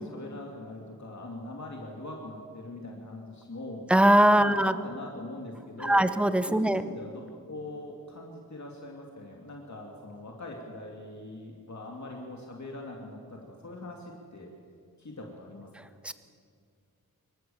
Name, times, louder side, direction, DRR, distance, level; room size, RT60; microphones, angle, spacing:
voice 1, 0.0-3.9 4.3-6.1 6.5-7.2 7.5-14.5 15.0-15.7, left 2 dB, 50° left, 0 dB, 2.6 m, -42 dB
voice 2, 3.9-4.7 5.8-6.8 16.0-16.1, right 1 dB, 5° right, 11 dB, 0.9 m, -21 dB
25.5 x 14.5 x 7.2 m, 2.3 s
wide cardioid pair, 80°, 36 cm